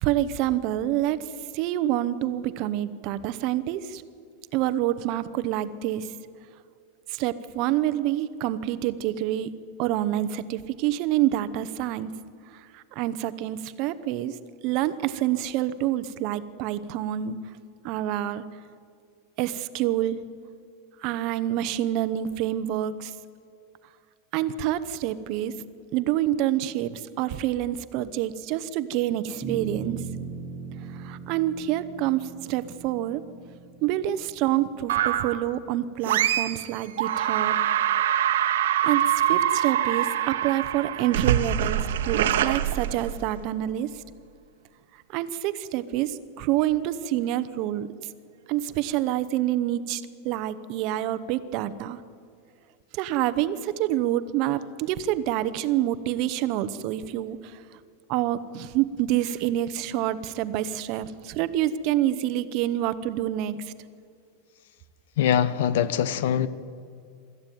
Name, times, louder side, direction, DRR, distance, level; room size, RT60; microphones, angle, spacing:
voice 1, 0.0-1.2 1.5-4.0 4.5-6.1 7.1-9.5 9.8-12.1 12.7-14.3 14.6-17.4 17.8-18.4 19.4-20.2 21.0-23.1 24.3-25.5 25.9-30.0 31.0-33.2 33.8-37.6 38.8-39.0 39.3-43.9 45.1-47.9 48.5-52.0 52.9-57.6 58.1-63.6, right 13 dB, 35° right, 0.8 m, -27 dB
sound 1, 29.4-36.0, right 6 dB, 10° right, 1.7 m, -38 dB
sound 2, 34.9-35.5 36.0-36.7 37.0-43.4, right 11 dB, 85° right, 1.2 m, -24 dB
voice 2, 65.2-66.5, left 9 dB, 65° left, 0.9 m, -23 dB
24.0 x 14.0 x 9.2 m
supercardioid pair, 175°, 0 cm